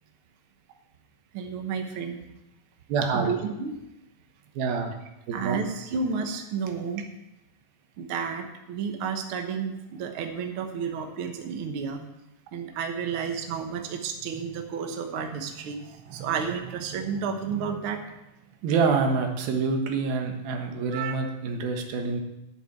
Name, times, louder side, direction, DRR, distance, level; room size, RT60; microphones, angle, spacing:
voice 1, 1.3-2.2 3.1-3.7 5.3-7.1 8.0-12.0 12.5-18.2 20.9-21.2, right 6 dB, 65° right, 4 dB, 1.3 m, -31 dB
voice 2, 2.9-3.3 4.6-4.9 5.3-5.6 18.6-22.2, right 4 dB, 85° right, 3 dB, 3.2 m, -26 dB
9.5 x 6.9 x 8.9 m, 0.94 s
omnidirectional pair, 4.2 m